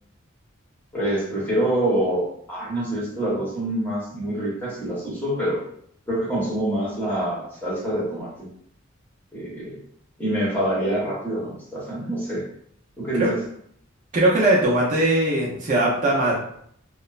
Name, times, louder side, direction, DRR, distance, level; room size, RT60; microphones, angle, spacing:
voice 1, 0.9-5.6 6.1-8.5 9.3-9.8 10.2-12.4 13.0-13.4, right 1 dB, 10° left, -7 dB, 0.9 m, -26 dB
voice 2, 14.1-16.3, right 1 dB, 40° right, -5 dB, 0.5 m, -20 dB
3.0 x 2.0 x 2.3 m, 0.67 s
head